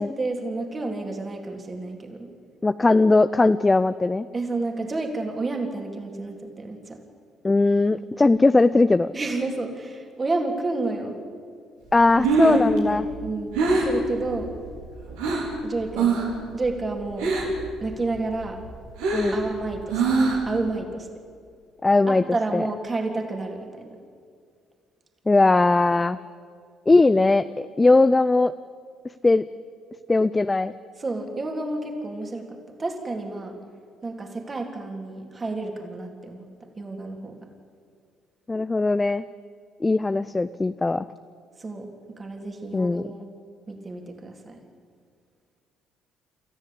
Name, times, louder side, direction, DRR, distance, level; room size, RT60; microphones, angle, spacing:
voice 1, 0.0-2.3 4.3-7.0 9.1-11.2 12.1-14.5 15.6-16.2 16.5-17.3 17.8-18.6 19.3-20.0 20.5-21.1 22.1-23.9 31.0-33.6 34.0-36.5 36.7-37.4 41.6-41.9 42.1-43.2 43.7-44.6, right 3 dB, 30° right, 3 dB, 3.6 m, -30 dB
voice 2, 2.6-4.3 7.4-9.1 11.9-13.0 19.1-19.4 21.8-22.2 22.5-22.6 25.3-26.2 26.9-28.5 29.2-29.4 30.1-30.7 38.5-39.2 39.8-41.1 42.7-43.0, left 3 dB, 20° left, 13 dB, 0.6 m, -19 dB
Breathing, 12.0-15.6 15.9-16.4 16.6-17.7 18.0-20.6, right 3 dB, 80° right, 4.4 m, -24 dB
27.5 x 14.0 x 8.7 m, 2.2 s
hypercardioid pair, 55°, 0 cm